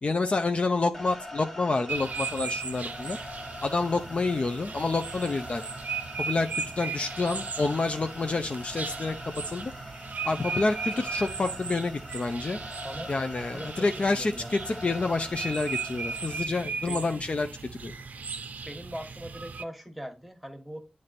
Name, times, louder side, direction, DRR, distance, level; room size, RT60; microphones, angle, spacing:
voice 1, 0.0-3.2 3.6-5.6 6.2-9.7 10.2-12.6 13.1-17.5 17.8-17.9, left 3 dB, 45° left, 6 dB, 0.5 m, -28 dB
sound 1, 0.9-16.4, left 1 dB, 25° left, 1.2 m, -43 dB
sound 2, 1.9-19.6, right 5 dB, 80° right, 0.5 m, -37 dB
voice 2, 14.1-14.6 16.9-17.1 18.6-20.8, equal, ahead, 6 dB, 1.3 m, -40 dB
8.4 x 3.2 x 4.1 m, 0.29 s
wide cardioid pair, 75°, 3 cm